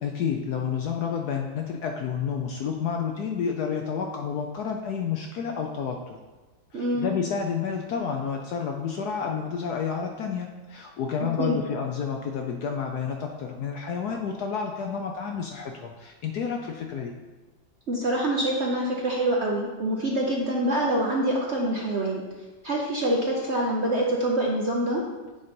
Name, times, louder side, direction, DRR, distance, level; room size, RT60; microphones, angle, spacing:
voice 1, 0.0-6.2 6.7-17.1, left 6 dB, 70° left, 3 dB, 1.0 m, -30 dB
voice 2, 6.7-7.1 11.4-11.6 17.9-22.2 22.6-25.0, right 1 dB, 50° right, -2 dB, 0.8 m, -25 dB
8.6 x 4.1 x 5.2 m, 1.2 s
omnidirectional pair, 2.2 m